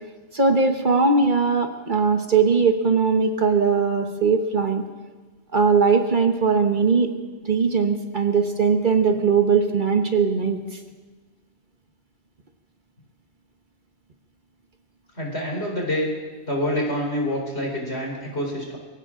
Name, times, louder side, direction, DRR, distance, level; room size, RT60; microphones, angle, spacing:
voice 1, 0.3-4.8 5.5-7.1 7.4-10.8, right 5 dB, 45° right, 5 dB, 1.3 m, -20 dB
voice 2, 15.2-16.1 16.5-18.8, left 1 dB, 70° left, 0 dB, 4.1 m, -26 dB
22.5 x 16.5 x 3.8 m, 1.4 s
omnidirectional pair, 1.1 m